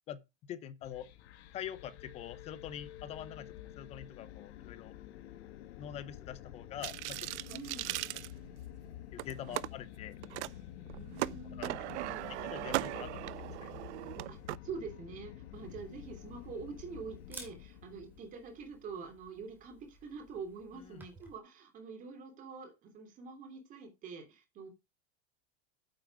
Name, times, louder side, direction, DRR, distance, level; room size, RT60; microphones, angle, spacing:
voice 1, 0.1-1.1 1.5-5.0 5.8-7.3 7.9-8.0 9.1-10.2 11.6-12.0 12.4-13.7 20.7-21.0, left 10 dB, 20° left, 0.6 m, -45 dB
ab futurecity atmos, 0.8-18.2, left 12 dB, 70° left, 1.8 m, -49 dB
sound 1, 6.8-8.8 9.2-9.7 10.2-10.5 10.9-14.6, right 17 dB, 90° right, 0.7 m, -38 dB
voice 2, 7.5-8.0 9.5-9.6 10.9-11.8 12.0-12.2 14.3-14.4 14.6-24.7, right 5 dB, 25° right, 3.1 m, -46 dB
Camera, 15.5-21.4, right 2 dB, 5° right, 2.3 m, -56 dB
9.7 x 7.9 x 4.7 m
supercardioid pair, 175°, 33 cm